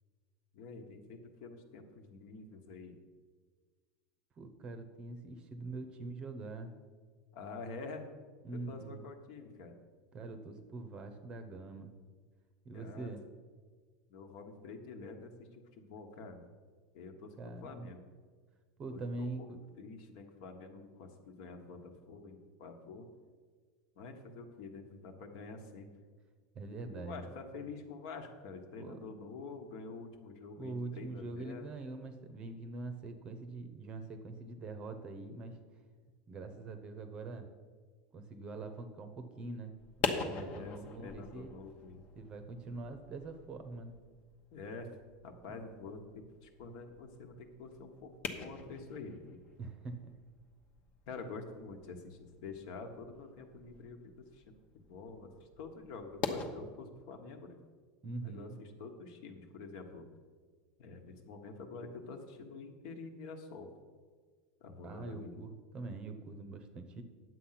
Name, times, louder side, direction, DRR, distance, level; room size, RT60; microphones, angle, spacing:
voice 1, 0.5-3.0 7.3-8.0 8.5-9.8 12.7-13.1 14.1-16.4 16.9-18.0 18.9-19.5 19.8-23.1 23.9-25.9 26.9-31.7 40.3-42.0 44.5-44.9 45.2-48.1 48.4-49.4 51.1-57.6 58.2-60.1 60.8-63.7 64.6-65.4, left 4 dB, 55° left, 5 dB, 1.4 m, -47 dB
voice 2, 4.4-6.7 8.4-9.0 10.1-11.9 12.6-13.2 17.4-17.9 18.8-19.6 26.5-27.3 28.8-29.0 30.6-35.6 36.3-37.5 38.1-39.7 40.2-41.5 42.2-44.0 45.5-45.6 49.6-50.1 58.0-58.6 64.8-67.0, right 3 dB, 25° right, 8 dB, 0.8 m, -44 dB
sound 1, 39.8-56.5, left 5 dB, 35° left, 1.0 m, -44 dB
9.9 x 7.8 x 5.8 m, 1.5 s
supercardioid pair, 165°, 4 cm